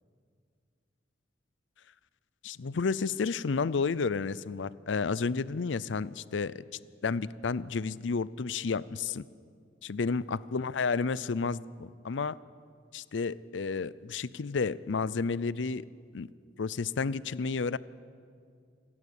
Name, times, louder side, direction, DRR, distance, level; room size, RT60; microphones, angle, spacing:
voice 1, 2.4-6.5 7.0-9.2 9.8-12.4 12.9-15.8 16.1-16.3 16.6-17.8, left 4 dB, 90° left, 19 dB, 0.5 m, -31 dB
27.0 x 12.0 x 8.4 m, 2.2 s
head